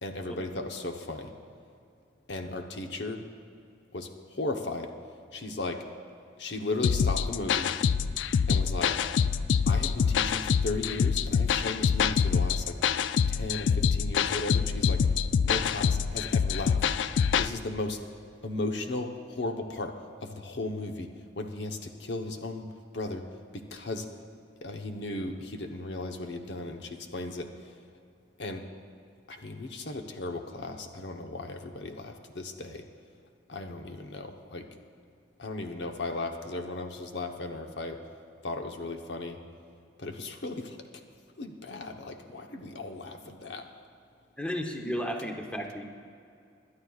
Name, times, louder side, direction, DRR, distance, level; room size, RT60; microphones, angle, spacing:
voice 1, 0.0-1.3 2.3-3.2 3.9-4.9 5.3-5.8 6.4-7.7 8.5-9.0 9.7-12.8 13.3-15.0 15.4-16.8 17.4-18.0 18.4-21.1 21.4-22.7 22.9-23.2 23.7-24.1 24.6-27.7 28.4-28.6 29.3-32.9 33.5-34.7 35.4-38.0 38.4-39.4 40.0-40.8 41.4-43.7, left 2 dB, 65° left, 4 dB, 0.9 m, -36 dB
sound 1, 6.8-17.5, left 6 dB, 80° left, 0.4 m, -26 dB
voice 2, 44.4-45.8, equal, 5° left, 2 dB, 0.9 m, -33 dB
26.0 x 11.5 x 2.4 m, 2.4 s
head